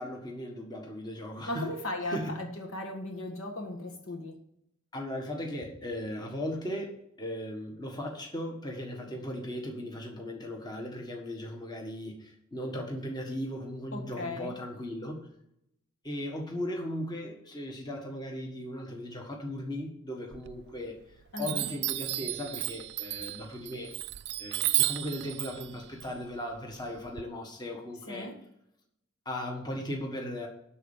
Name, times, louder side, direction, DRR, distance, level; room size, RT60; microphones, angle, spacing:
voice 1, 0.0-1.7 2.0-2.4 4.9-15.3 16.0-21.0 21.4-23.9 24.4-28.3 29.2-30.5, left 1 dB, 20° left, 1 dB, 1.5 m, -37 dB
voice 2, 1.5-4.3 13.9-14.5 21.3-21.7 28.1-28.4, left 1 dB, 65° left, 3 dB, 1.6 m, -37 dB
Chime, 20.3-21.0 21.4-27.2, right 17 dB, 50° right, 0.3 m, -33 dB
12.0 x 4.3 x 7.2 m, 0.78 s
head